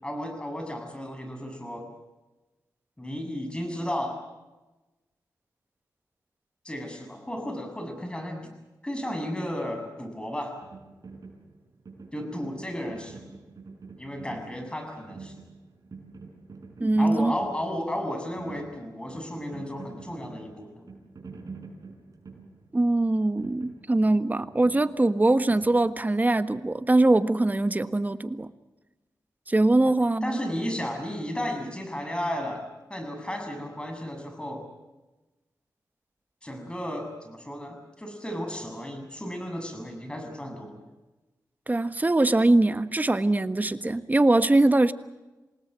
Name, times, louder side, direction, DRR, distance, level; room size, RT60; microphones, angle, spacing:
voice 1, 0.0-1.9 3.0-4.2 6.6-8.5 8.8-10.6 12.1-13.2 14.0-15.4 17.0-21.0 29.8-29.9 30.2-32.6 32.9-34.7 36.4-40.8, equal, 15° left, 5 dB, 7.3 m, -34 dB
sound 1, 10.6-26.4, right 4 dB, 60° right, 6.0 m, -47 dB
voice 2, 16.8-17.3 22.7-28.5 29.5-30.4 41.7-44.9, right 2 dB, 25° right, 11 dB, 1.4 m, -22 dB
28.0 x 18.5 x 7.6 m, 1.1 s
cardioid pair, 65°, 7 cm